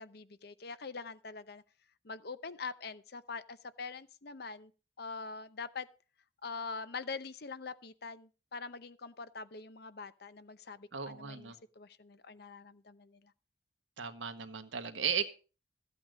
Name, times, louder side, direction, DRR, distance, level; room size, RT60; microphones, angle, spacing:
voice 1, 0.0-1.6 2.0-4.7 5.0-5.9 6.4-13.3, left 4 dB, 55° left, 0.8 m, -44 dB
voice 2, 10.9-11.6 14.0-15.2, right 7 dB, 90° right, 1.4 m, -36 dB
14.0 x 8.5 x 5.1 m
head